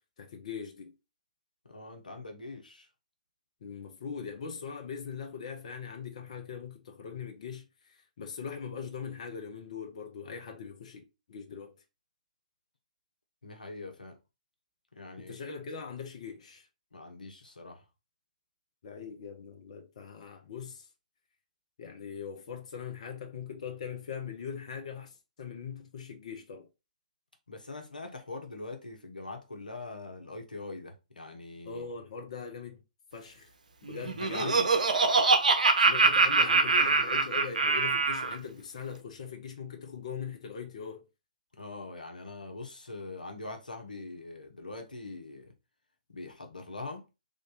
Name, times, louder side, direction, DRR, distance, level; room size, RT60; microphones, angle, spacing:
voice 1, 0.2-0.9 3.6-11.0 11.3-11.8 15.2-16.7 18.8-20.8 21.8-26.7 31.6-32.8 33.1-33.5 33.8-34.6 35.8-41.0, left 6 dB, 50° left, 0.9 m, -41 dB
voice 2, 1.7-2.9 13.4-14.2 15.0-15.4 16.9-17.8 27.5-31.9 34.0-34.7 41.6-45.5 46.1-47.1, left 2 dB, 85° left, 1.0 m, -43 dB
Laughter, 33.9-38.4, right 4 dB, 70° right, 0.6 m, -24 dB
3.6 x 2.6 x 3.8 m
figure-of-eight pair, 125°, 4 cm